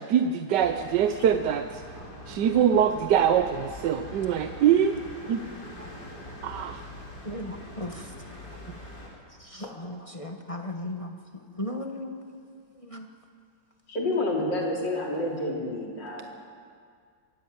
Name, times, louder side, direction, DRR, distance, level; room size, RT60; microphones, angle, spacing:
voice 1, 0.0-1.8 2.3-5.0 5.3-5.4 6.4-6.9, right 9 dB, 75° right, 7 dB, 1.4 m, -23 dB
sound 1, 0.6-9.1, left 1 dB, 65° left, 5.0 m, -43 dB
voice 2, 7.2-8.1 9.4-13.1, left 1 dB, 20° left, 3 dB, 1.3 m, -37 dB
voice 3, 13.9-16.2, left 1 dB, 90° left, -1 dB, 4.1 m, -29 dB
24.0 x 15.5 x 8.6 m, 2.1 s
omnidirectional pair, 1.9 m